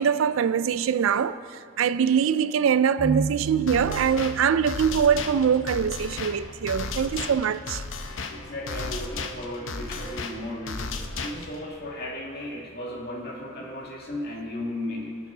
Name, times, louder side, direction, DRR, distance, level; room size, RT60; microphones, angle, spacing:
voice 1, 0.0-1.4 1.8-7.8, right 7 dB, 80° right, 0.4 m, -23 dB
sound 1, 3.0-10.0, right 3 dB, 40° right, 0.8 m, -37 dB
sound 2, 3.7-11.7, left 4 dB, 70° left, 0.7 m, -35 dB
voice 2, 8.3-15.2, left 1 dB, 55° left, 2.1 m, -35 dB
20.5 x 7.3 x 3.9 m
head